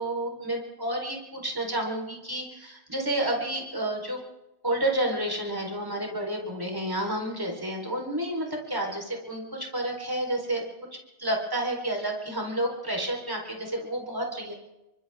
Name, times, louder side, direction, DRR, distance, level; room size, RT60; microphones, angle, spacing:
voice 1, 0.0-4.2 4.6-10.6 11.2-14.5, right 1 dB, 15° right, 1 dB, 4.4 m, -30 dB
29.0 x 24.0 x 3.7 m, 0.96 s
omnidirectional pair, 1.7 m